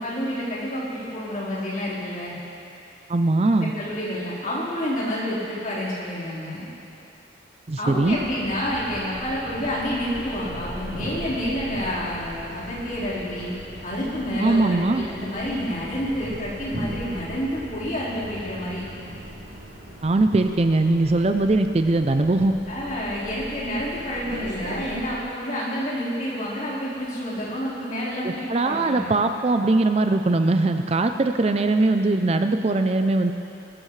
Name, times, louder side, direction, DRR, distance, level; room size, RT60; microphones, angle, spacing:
voice 1, 0.0-2.3 3.6-6.7 7.8-13.5 13.8-18.9 22.7-29.1, equal, 45° left, -9 dB, 4.2 m, -29 dB
voice 2, 3.1-3.7 7.7-8.2 14.4-15.0 20.0-22.6 28.2-33.3, right 2 dB, 35° right, 7 dB, 0.4 m, -21 dB
sound 1, 8.0-25.2, equal, 75° right, 3.2 m, -38 dB
22.5 x 14.5 x 3.3 m, 2.7 s
head